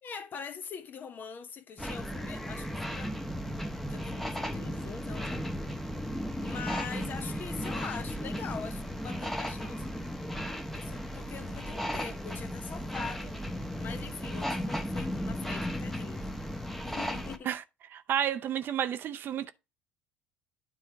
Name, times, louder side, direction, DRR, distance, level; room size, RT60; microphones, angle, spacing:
voice 1, 0.0-3.1 3.9-5.8 6.4-9.9 10.7-13.4 13.8-16.3 16.8-17.5, left 6 dB, 40° left, 1.0 m, -43 dB
sound 1, 1.8-17.4, equal, 5° left, 1.0 m, -35 dB
voice 2, 17.9-19.5, right 10 dB, 50° right, 0.6 m, -31 dB
9.5 x 3.6 x 4.7 m
hypercardioid pair, 70°, 5 cm